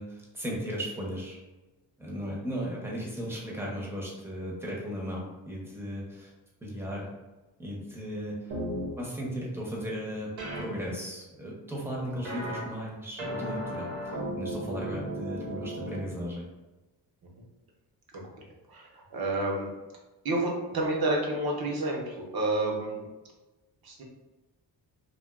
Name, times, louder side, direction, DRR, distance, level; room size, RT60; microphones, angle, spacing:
voice 1, 0.0-1.4 2.0-6.3 6.6-7.1 7.6-8.5 9.0-10.3 10.5-16.5, equal, 5° right, -4 dB, 0.8 m, -36 dB
sound 1, 8.5-8.9 10.4-10.6 12.2-12.6 13.2-16.0, equal, 85° right, 0.8 m, -35 dB
voice 2, 18.7-19.7 20.2-23.1 23.8-24.0, right 2 dB, 55° right, -1 dB, 0.8 m, -29 dB
2.4 x 2.2 x 2.3 m, 1.1 s
cardioid pair, 65°, 44 cm